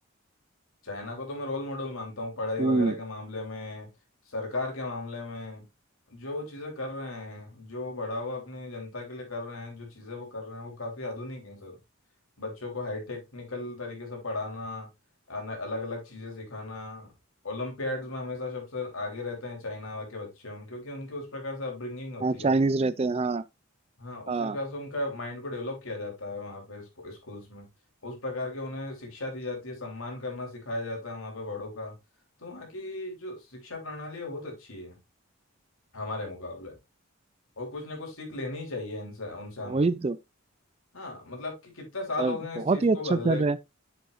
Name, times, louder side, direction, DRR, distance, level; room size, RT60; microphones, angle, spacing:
voice 1, 0.8-3.9 4.3-5.6 6.1-11.8 12.4-14.9 15.3-17.1 17.4-22.5 24.0-27.7 28.0-31.9 32.4-35.0 35.9-36.8 37.6-39.9 40.9-43.4, left 2 dB, 70° left, 3.4 m, -36 dB
voice 2, 2.6-2.9 22.2-23.4 24.3-24.6 39.6-40.2 42.2-42.4 42.7-43.6, right 3 dB, 30° right, 0.4 m, -25 dB
8.5 x 6.9 x 2.5 m
head